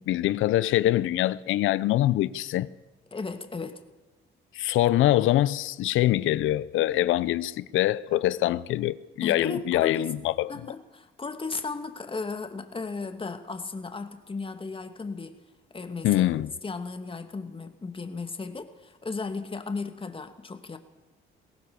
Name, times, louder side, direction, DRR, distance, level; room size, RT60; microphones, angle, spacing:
voice 1, 0.0-2.7 4.5-10.5 16.0-16.5, left 14 dB, 85° left, 0.8 m, -24 dB
voice 2, 3.1-3.8 9.2-10.2 10.5-15.4 15.7-16.1 16.6-20.8, left 4 dB, 25° left, 2.4 m, -35 dB
22.5 x 17.5 x 7.0 m
cardioid pair, 90°, 20 cm